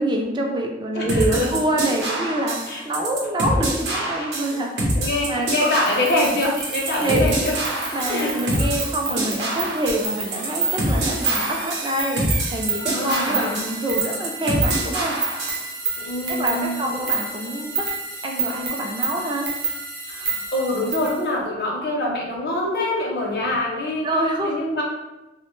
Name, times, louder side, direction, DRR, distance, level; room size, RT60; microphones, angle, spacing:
voice 1, 0.0-5.0 5.2-5.7 7.0-7.4 7.7-15.2 16.3-17.9 18.2-19.5 24.0-24.6, right 1 dB, 25° right, 1 dB, 0.3 m, -26 dB
voice 2, 0.9-1.6 2.7-2.8 3.9-4.4 5.0-7.6 8.1-8.5 12.8-13.6 16.0-16.9 20.1-24.1 24.4-24.8, left 1 dB, 60° left, -3 dB, 0.6 m, -25 dB
sound 1, 1.1-15.7, right 1 dB, 85° right, 0.7 m, -26 dB
sound 2, 5.6-21.2, right 4 dB, 50° right, 0.7 m, -29 dB
2.8 x 2.1 x 3.0 m, 1.0 s
head